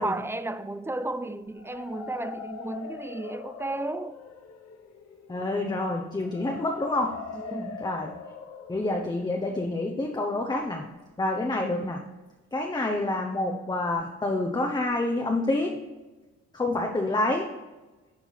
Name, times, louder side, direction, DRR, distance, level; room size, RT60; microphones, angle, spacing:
voice 1, 0.0-4.2 7.3-7.9, right 2 dB, 10° right, 0.3 m, -33 dB
sound 1, 1.4-11.2, left 5 dB, 55° left, 1.1 m, -43 dB
voice 2, 5.3-7.2 7.8-8.1 8.7-10.8 11.2-12.0 12.5-15.8 16.5-17.5, left 2 dB, 15° left, 0.8 m, -28 dB
9.6 x 4.5 x 4.1 m
cardioid pair, 90°, 30 cm